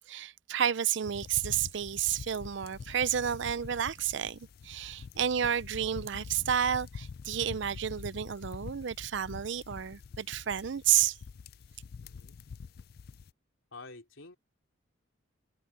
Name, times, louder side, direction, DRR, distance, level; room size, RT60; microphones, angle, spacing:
voice 1, 0.0-11.2, right 9 dB, 60° right, 0.5 m, -31 dB
sound 1, 1.0-13.3, left 5 dB, 50° left, 0.3 m, -46 dB
voice 2, 12.0-12.4 13.7-14.4, left 3 dB, 80° left, 3.6 m, -49 dB
head